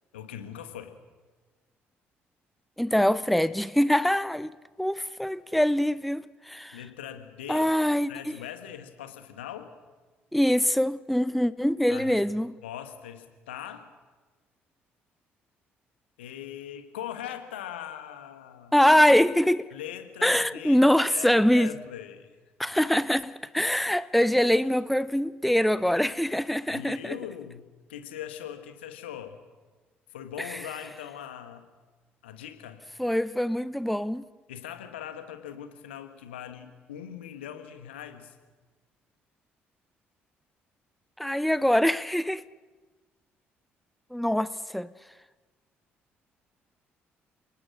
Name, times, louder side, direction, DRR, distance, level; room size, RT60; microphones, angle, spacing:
voice 1, 0.1-0.9 6.7-7.7 8.1-9.7 11.9-12.2 12.6-13.9 16.2-18.7 19.7-22.3 26.7-29.4 30.1-31.7 32.2-32.8 34.5-38.4, left 10 dB, 75° left, 1.7 m, -41 dB
voice 2, 2.8-4.5 4.8-6.8 7.5-8.1 10.3-12.5 18.7-19.7 20.2-21.7 22.6-27.2 33.0-34.3 41.2-42.4 44.1-44.9, equal, ahead, 0.7 m, -23 dB
29.0 x 19.5 x 6.3 m
figure-of-eight pair, 45°, 6 cm